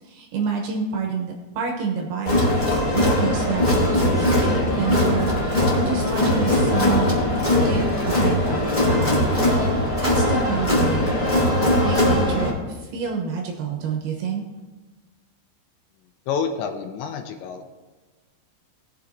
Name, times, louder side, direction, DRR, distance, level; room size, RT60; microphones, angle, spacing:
voice 1, 0.0-2.4 2.9-7.1 7.6-8.6 8.9-9.4 9.7-14.4, right 5 dB, 75° right, 1 dB, 2.6 m, -28 dB
Crowd, 2.2-12.5, left 1 dB, 25° left, 1.0 m, -20 dB
voice 2, 16.3-17.6, left 6 dB, 80° left, 6 dB, 2.9 m, -28 dB
19.5 x 7.1 x 2.6 m, 1.2 s
omnidirectional pair, 5.4 m